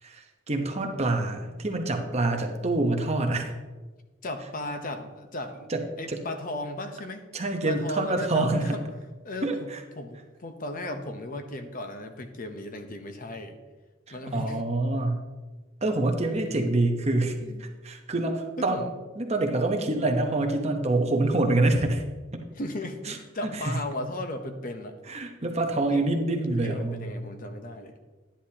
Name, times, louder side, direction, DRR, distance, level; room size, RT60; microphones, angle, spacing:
voice 1, 0.0-3.5 5.7-5.8 6.1-6.2 7.3-8.8 9.4-9.8 14.1-15.2 15.8-18.9 19.2-22.0 22.3-22.4 23.0-23.2 23.4-23.8 25.1-27.1, right 2 dB, 35° right, 3 dB, 1.0 m, -26 dB
voice 2, 4.2-5.7 6.0-7.2 7.7-8.8 9.2-9.7 10.0-13.6 14.1-14.6 17.4-17.6 18.6-18.9 22.6-24.9 25.9-26.2 26.6-28.0, left 1 dB, 45° left, 6 dB, 0.9 m, -36 dB
11.5 x 10.0 x 2.9 m, 1.3 s
head